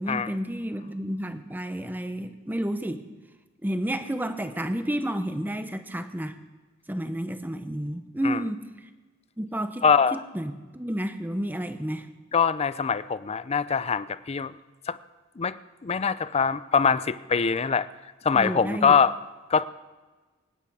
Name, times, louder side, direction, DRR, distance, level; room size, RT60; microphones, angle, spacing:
voice 1, 0.0-3.1 3.6-6.4 6.9-8.9 9.4-9.8 10.1-12.1 18.3-19.0, right 1 dB, 10° right, 9 dB, 0.8 m, -31 dB
voice 2, 9.8-10.2 12.3-14.5 14.9-15.0 15.4-17.9 18.2-19.1 19.5-19.7, left 6 dB, 30° left, 15 dB, 0.4 m, -23 dB
24.0 x 9.4 x 4.8 m, 1.3 s
head